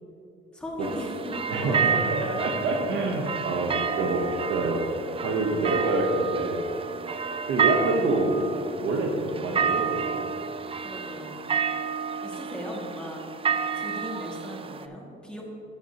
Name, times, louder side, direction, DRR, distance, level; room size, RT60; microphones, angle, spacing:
voice 1, 0.5-2.6 10.8-11.5 12.2-13.2 13.7-15.4, equal, 5° left, -3 dB, 2.1 m, -37 dB
sound 1, 0.8-14.8, right 6 dB, 30° right, 0.4 m, -30 dB
voice 2, 2.4-4.9 5.2-6.6 7.5-8.4 8.8-10.3, right 2 dB, 85° right, 0 dB, 1.0 m, -27 dB
11.5 x 8.2 x 2.9 m, 2.9 s
cardioid pair, 90°, 20 cm